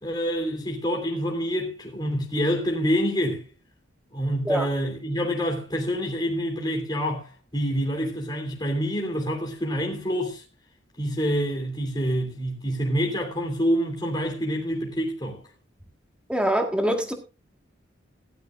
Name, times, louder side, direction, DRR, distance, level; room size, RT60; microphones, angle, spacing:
voice 1, 0.0-3.4 4.1-10.4 11.0-15.4, equal, 25° left, 3.1 m, -27 dB
voice 2, 16.3-17.1, equal, 5° right, 1.7 m, -24 dB
16.5 x 11.5 x 2.5 m
head